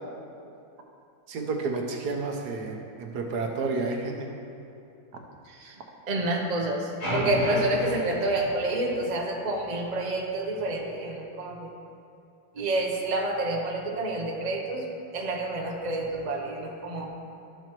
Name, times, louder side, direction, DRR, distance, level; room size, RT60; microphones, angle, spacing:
voice 1, 1.3-4.3 5.1-5.2, right 3 dB, 65° right, 2 dB, 1.3 m, -31 dB
voice 2, 6.1-11.7 12.6-14.8 15.1-17.1, right 2 dB, 50° right, 0 dB, 0.5 m, -28 dB
sound 1, 7.0-9.3, equal, 70° left, 3.0 m, -32 dB
12.5 x 6.7 x 3.0 m, 2.6 s
omnidirectional pair, 2.1 m